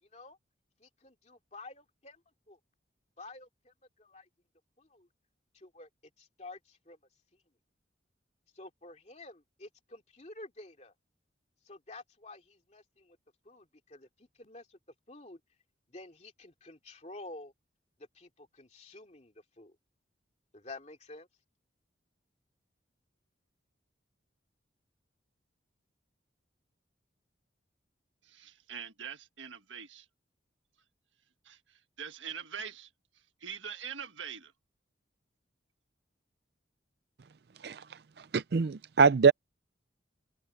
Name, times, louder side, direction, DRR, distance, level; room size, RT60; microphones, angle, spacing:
voice 1, 0.0-0.4 0.8-2.6 3.2-4.3 4.8-5.1 5.5-5.9 6.2-7.0 8.5-10.9 11.6-13.2 13.4-14.8 15.1-15.4 15.9-17.5 18.0-19.8 20.5-21.3, left 2 dB, 35° left, 2.7 m, -50 dB
voice 2, 28.2-30.1 31.4-32.9 33.4-34.5, right 7 dB, 85° right, 1.6 m, -43 dB
voice 3, 38.2-39.3, right 5 dB, 55° right, 0.4 m, -24 dB
open air
head